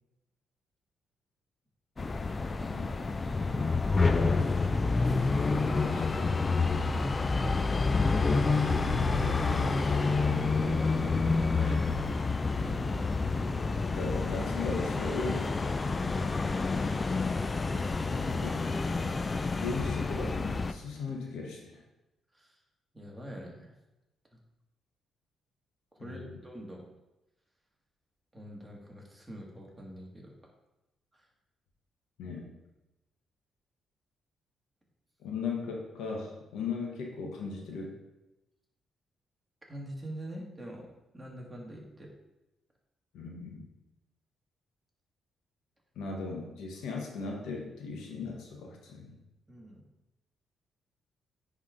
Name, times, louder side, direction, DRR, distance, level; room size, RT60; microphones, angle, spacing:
sound 1, 2.0-20.7, left 4 dB, 30° left, 0.3 m, -28 dB
voice 1, 5.8-6.3 9.2-9.6 13.9-15.6 18.1-18.7 19.5-21.8 26.0-26.4 32.2-32.5 35.2-37.9 43.1-43.7 45.9-49.2, left 4 dB, 85° left, 0 dB, 1.3 m, -37 dB
voice 2, 9.1-9.6 10.1-12.0 12.6-13.1 22.3-22.6 22.9-23.7 25.9-26.8 28.3-30.4 31.1-31.2 39.7-42.1 49.5-49.8, equal, 10° right, -2 dB, 1.7 m, -44 dB
9.5 x 3.6 x 3.9 m, 0.96 s
cardioid pair, 95°, 0 cm